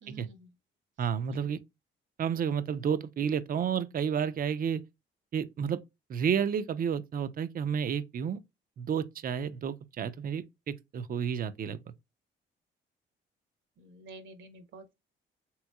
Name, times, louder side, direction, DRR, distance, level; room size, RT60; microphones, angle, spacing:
voice 1, 0.0-0.5 1.3-1.5 13.8-14.9, right 3 dB, 70° right, 1.0 m, -50 dB
voice 2, 1.0-1.6 2.2-4.8 5.3-5.8 6.1-8.4 8.8-11.8, right 7 dB, 45° right, 0.5 m, -31 dB
3.4 x 3.0 x 2.2 m
cardioid pair, 90°, 20 cm